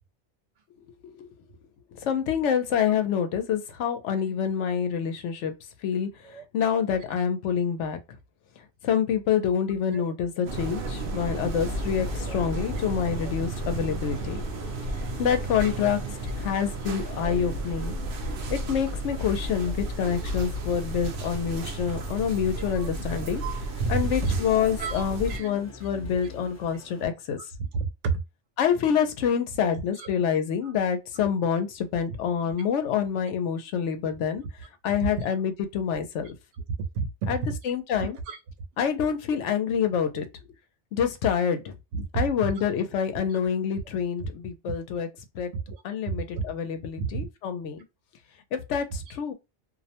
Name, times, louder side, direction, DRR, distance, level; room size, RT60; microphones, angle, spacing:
voice 1, 1.9-5.5 5.8-6.1 6.5-8.0 8.8-14.4 15.2-16.0 16.4-17.9 18.5-23.4 23.9-27.4 28.6-34.4 34.8-36.3 37.3-38.2 38.8-40.3 40.9-41.7 42.1-45.1 45.3-45.5 45.8-47.8 48.5-49.3, left 8 dB, 90° left, 0.9 m, -27 dB
sound 1, 10.5-25.4, right 1 dB, 60° right, 0.7 m, -33 dB
sound 2, 11.0-27.0, left 3 dB, 20° left, 0.5 m, -46 dB
voice 2, 22.6-22.9 23.8-24.4 24.8-25.0 25.3-25.5 27.7-28.1 29.6-30.1 30.6-30.7 35.2-35.3 36.9-37.5 38.0-38.4 40.1-40.2 41.9-42.5 44.2-44.3 45.5-46.4 47.0-47.3, right 4 dB, 80° right, 1.0 m, -31 dB
2.5 x 2.1 x 2.7 m
omnidirectional pair, 1.2 m